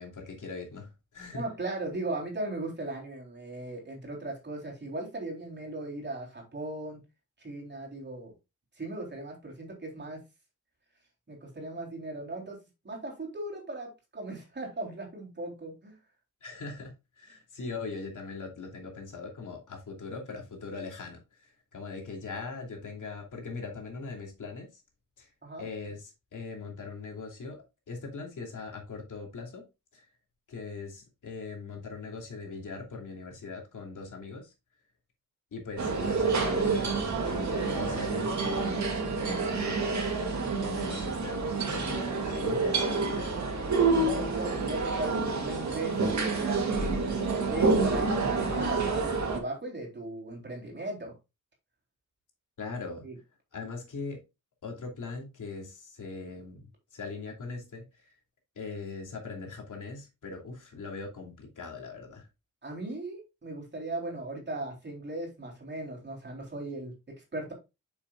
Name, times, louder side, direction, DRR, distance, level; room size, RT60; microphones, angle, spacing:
voice 1, 0.0-1.4 16.4-24.8 25.2-25.3 25.6-29.6 29.9-30.1 30.5-34.5 35.5-37.0 37.2-40.3 40.5-43.6 52.6-53.1 53.5-54.2 54.6-58.2 58.5-62.3, left 4 dB, 65° left, 2.9 m, -41 dB
voice 2, 1.3-7.0 7.4-8.3 8.8-10.2 11.3-12.6 12.8-16.0 25.4-25.7 44.0-47.2 47.5-51.1 53.0-53.1 62.6-67.5, right 2 dB, 30° right, 3.6 m, -38 dB
sound 1, 35.8-49.4, right 4 dB, 60° right, 2.2 m, -28 dB
8.8 x 6.9 x 2.4 m
wide cardioid pair, 155°, 32 cm